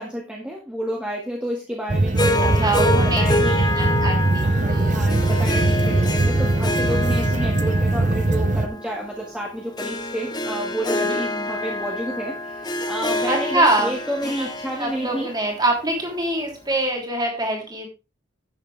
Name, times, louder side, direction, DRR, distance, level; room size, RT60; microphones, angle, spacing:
voice 1, 0.0-3.7 4.4-15.3, right 1 dB, 5° right, -2 dB, 1.8 m, -30 dB
sound 1, 1.9-8.7, right 2 dB, 40° right, 0.7 m, -21 dB
Harp, 2.2-16.5, left 1 dB, 20° left, 1.1 m, -27 dB
voice 2, 2.4-3.2 3.7-5.1 10.9-11.2 13.2-13.9 14.4-14.5 14.8-17.9, right 2 dB, 20° right, 1 dB, 3.2 m, -24 dB
11.0 x 8.7 x 3.4 m, 0.29 s
head